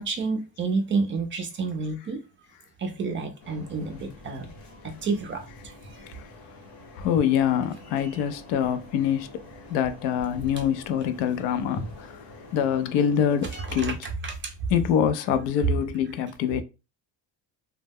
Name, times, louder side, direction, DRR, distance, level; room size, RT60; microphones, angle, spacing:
voice 1, 0.0-2.2 2.8-4.5 4.8-6.0 13.6-14.5, right 4 dB, 30° right, 0.4 m, -30 dB
sound 1, 3.4-13.6, left 1 dB, 40° left, 0.8 m, -45 dB
voice 2, 7.0-9.3 9.7-12.1 12.5-14.0 14.7-16.6, left 9 dB, 85° left, 0.5 m, -25 dB
2.2 x 2.0 x 3.4 m
cardioid pair, 130°, 43 cm